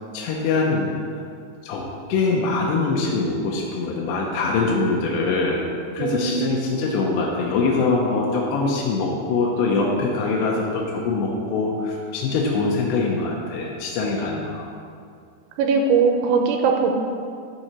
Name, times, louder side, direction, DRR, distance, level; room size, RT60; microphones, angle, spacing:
voice 1, 0.1-1.2 1.6-5.6 5.9-14.7, left 3 dB, 80° left, -2 dB, 2.9 m, -23 dB
voice 2, 6.0-6.8 15.6-16.9, right 5 dB, 90° right, 3 dB, 3.1 m, -20 dB
11.0 x 6.8 x 4.4 m, 2.3 s
omnidirectional pair, 5.3 m